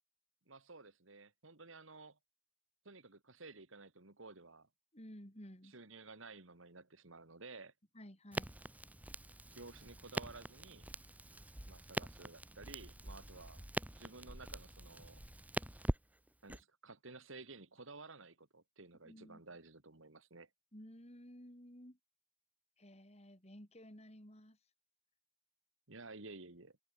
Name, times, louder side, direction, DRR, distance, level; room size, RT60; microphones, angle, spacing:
voice 1, 0.5-2.2 2.8-4.7 5.6-7.7 9.5-10.9 11.7-13.6 14.0-15.2 16.4-20.5 25.9-26.8, right 3 dB, 80° right, 2.5 m, -54 dB
voice 2, 4.9-5.7 7.9-8.5 19.0-19.4 20.7-22.0 22.8-24.6, equal, 30° left, 5.9 m, -54 dB
Crackle, 8.3-16.6, right 1 dB, 10° right, 1.4 m, -44 dB
head